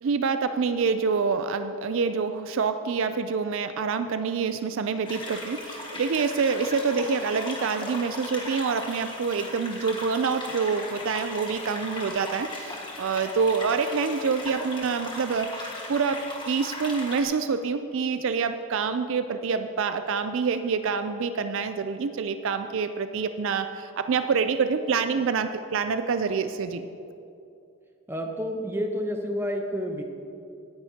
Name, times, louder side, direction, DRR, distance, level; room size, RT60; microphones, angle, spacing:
voice 1, 0.0-26.9, right 5 dB, 60° right, 9 dB, 0.4 m, -27 dB
sound 1, 5.1-17.2, left 1 dB, 20° left, 1.5 m, -38 dB
voice 2, 28.1-30.0, equal, 10° right, 3 dB, 0.8 m, -29 dB
17.5 x 10.0 x 2.8 m, 2.6 s
head